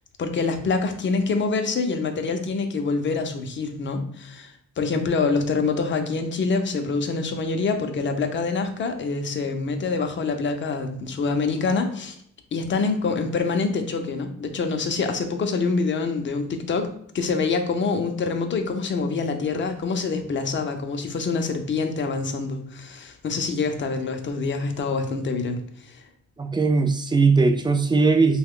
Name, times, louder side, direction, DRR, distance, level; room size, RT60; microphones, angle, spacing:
voice 1, 0.2-12.2 12.5-16.9 17.1-26.0, left 4 dB, 40° left, 6 dB, 0.6 m, -26 dB
voice 2, 26.4-28.4, right 4 dB, 15° right, 6 dB, 0.3 m, -19 dB
3.1 x 2.3 x 3.6 m, 0.65 s
cardioid pair, 90°, 30 cm